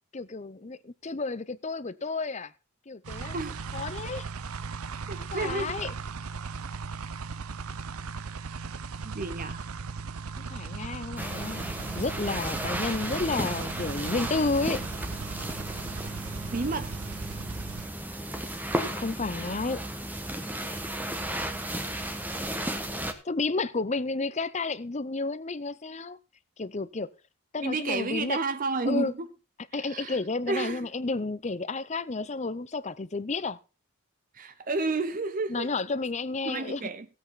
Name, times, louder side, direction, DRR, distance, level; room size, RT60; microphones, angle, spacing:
voice 1, 0.1-2.5 2.9-3.4 3.7-4.2 5.2-5.9 10.4-14.8 18.9-19.8 23.2-26.2 26.6-27.1 27.5-28.4 28.9-29.1 29.7-33.6 35.5-36.8, left 3 dB, 30° left, 0.7 m, -31 dB
sound 1, 3.0-17.9, right 5 dB, 85° right, 0.7 m, -37 dB
voice 2, 5.1-5.8 9.0-9.7 11.8-12.0 16.5-17.0 27.6-29.3 29.7-30.2 30.5-30.9 34.3-35.7 36.4-37.1, right 3 dB, 40° right, 0.7 m, -31 dB
sound 2, 11.2-23.1, right 1 dB, 10° right, 1.3 m, -34 dB
17.0 x 8.1 x 4.1 m
head